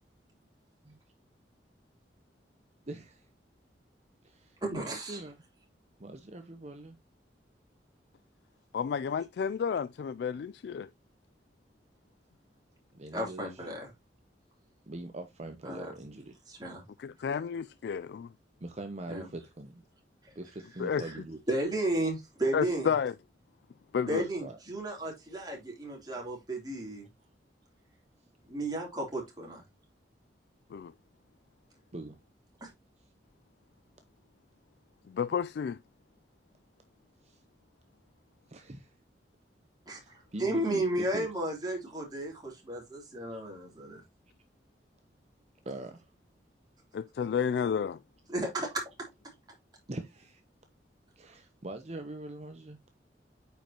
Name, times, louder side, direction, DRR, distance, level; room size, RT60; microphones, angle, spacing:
voice 1, 2.9-3.2 4.2-5.4 6.0-7.0 12.9-13.6 14.9-16.4 18.6-19.8 20.3-21.4 24.2-24.6 31.9-32.2 37.2-37.4 38.5-38.9 39.9-41.3 43.3-43.4 45.6-46.1 49.9-50.4 51.2-52.8, right 2 dB, 40° right, 0.8 m, -43 dB
voice 2, 4.6-5.2 13.1-13.9 15.6-15.9 16.6-16.8 19.1-19.3 21.0-21.1 21.5-22.9 24.1-27.1 28.5-29.6 32.6-32.7 39.9-40.0 40.4-44.0 48.3-48.8, right 1 dB, 25° right, 3.2 m, -33 dB
voice 3, 8.7-10.9 17.0-18.3 20.8-21.0 22.5-23.1 23.9-24.3 30.7-30.9 35.1-35.8 46.9-48.0, left 7 dB, 65° left, 0.3 m, -31 dB
8.9 x 5.3 x 2.9 m
head